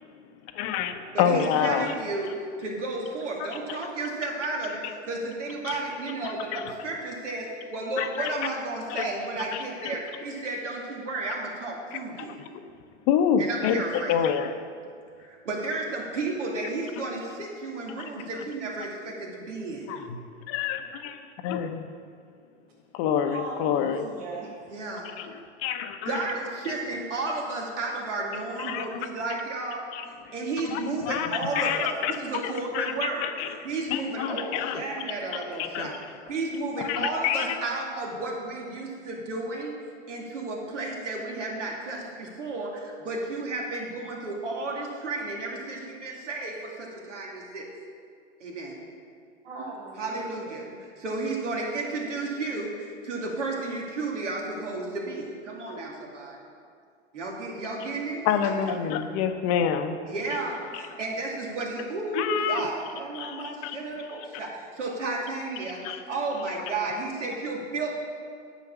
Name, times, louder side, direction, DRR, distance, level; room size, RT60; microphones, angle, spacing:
voice 1, 0.5-1.9 3.4-3.8 4.8-4.9 5.6-5.8 6.2-6.7 8.0-8.3 8.9-9.1 9.5-10.0 11.9-12.5 13.1-14.6 18.0-18.4 19.9-20.2 20.5-21.1 21.4-21.9 22.9-24.1 25.0-26.2 28.6-29.0 29.9-30.3 30.7-33.6 33.9-34.8 35.6-35.9 36.8-37.6 58.2-60.0 60.7-60.8 62.1-62.7 63.1-64.1 65.8-66.0, left 8 dB, 40° left, 8 dB, 0.9 m, -28 dB
voice 2, 1.1-2.3 2.6-12.3 13.4-14.1 15.2-19.9 24.7-25.1 26.0-29.8 30.3-33.3 33.6-36.0 36.3-39.7 40.1-47.7 48.4-48.8 50.0-56.4 57.1-58.5 60.1-67.9, right 2 dB, 80° right, -1 dB, 2.6 m, -32 dB
voice 3, 23.3-24.5 49.4-50.8, right 2 dB, 60° right, -5 dB, 2.1 m, -39 dB
10.0 x 6.3 x 7.1 m, 2.3 s
hypercardioid pair, 105°, 36 cm